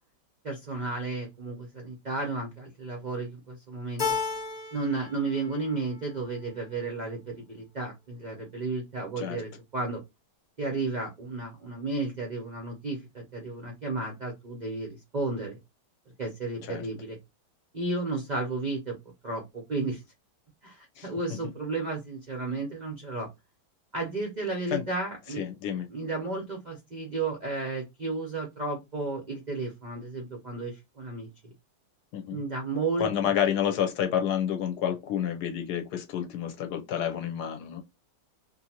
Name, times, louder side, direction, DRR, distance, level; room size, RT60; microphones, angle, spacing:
voice 1, 0.4-4.0 4.7-10.0 10.6-15.6 16.2-17.2 17.7-19.0 19.2-20.0 20.6-23.3 23.9-25.4 25.9-31.5 32.3-33.1, right 3 dB, 65° right, 0.4 m, -33 dB
Keyboard (musical), 4.0-5.1 5.4-6.2, left 5 dB, 30° left, 0.9 m, -32 dB
voice 2, 25.4-25.9 32.1-32.4 33.0-37.8, left 9 dB, 70° left, 1.1 m, -29 dB
2.7 x 2.6 x 2.8 m
omnidirectional pair, 1.9 m